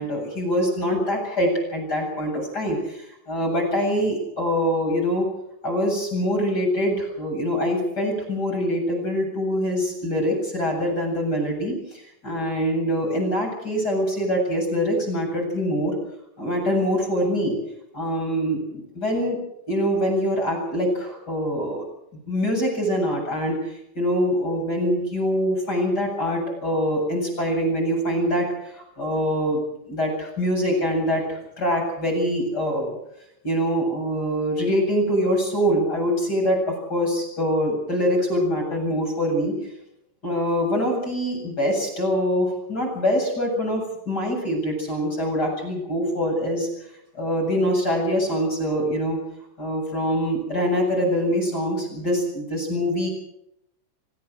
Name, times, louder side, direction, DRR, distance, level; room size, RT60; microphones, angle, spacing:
voice 1, 0.0-5.3 5.6-15.9 16.4-17.6 17.9-19.4 19.7-21.8 22.3-33.0 33.4-39.5 40.2-46.7 47.1-49.2 49.6-53.1, equal, 20° left, 1 dB, 8.1 m, -24 dB
26.5 x 16.5 x 6.6 m, 0.80 s
omnidirectional pair, 6.0 m